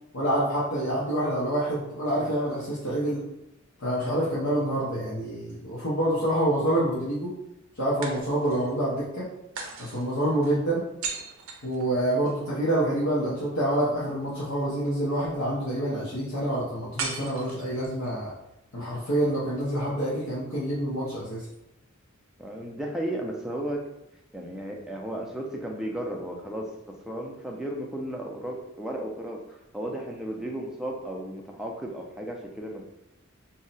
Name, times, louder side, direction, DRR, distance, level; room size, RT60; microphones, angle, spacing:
voice 1, 0.1-3.2 3.8-7.3 7.8-9.3 9.8-10.8 11.6-18.3 18.7-21.5, right 1 dB, 85° left, -9 dB, 0.8 m, -27 dB
sound 1, 4.9-6.0 8.0-8.8 9.6-12.4 17.0-18.1, right 4 dB, 80° right, 0.5 m, -38 dB
voice 2, 22.4-23.8 24.3-26.7 27.1-29.4 29.7-32.8, right 1 dB, 5° right, 0 dB, 0.4 m, -34 dB
2.7 x 2.1 x 3.9 m, 0.88 s
head